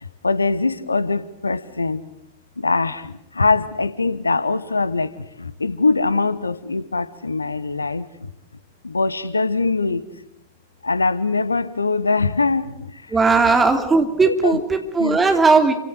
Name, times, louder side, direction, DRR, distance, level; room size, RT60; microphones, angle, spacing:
voice 1, 0.2-2.0 2.6-5.1 5.4-8.3 8.8-10.0 10.8-12.9 14.2-14.6 15.0-15.2, left 3 dB, 80° left, 16 dB, 1.0 m, -22 dB
voice 2, 13.1-15.7, right 4 dB, 15° right, 5 dB, 3.1 m, -17 dB
28.5 x 17.0 x 8.1 m, 0.84 s
figure-of-eight pair, 90°, 0 cm